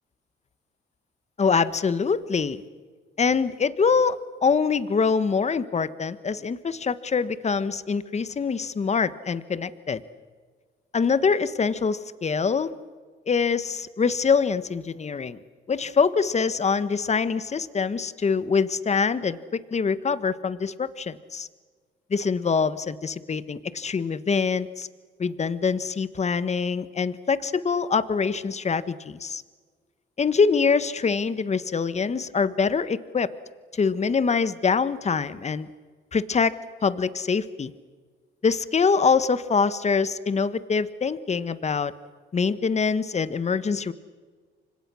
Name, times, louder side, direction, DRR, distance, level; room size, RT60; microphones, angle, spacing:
voice 1, 1.4-2.6 3.2-10.0 10.9-12.7 13.3-15.4 15.7-21.5 22.1-24.9 25.2-29.4 30.2-33.3 33.7-35.7 36.1-37.7 38.4-41.9 42.3-43.9, left 5 dB, 35° left, 15 dB, 1.3 m, -24 dB
29.5 x 25.0 x 6.3 m, 1.5 s
cardioid pair, 90°, 20 cm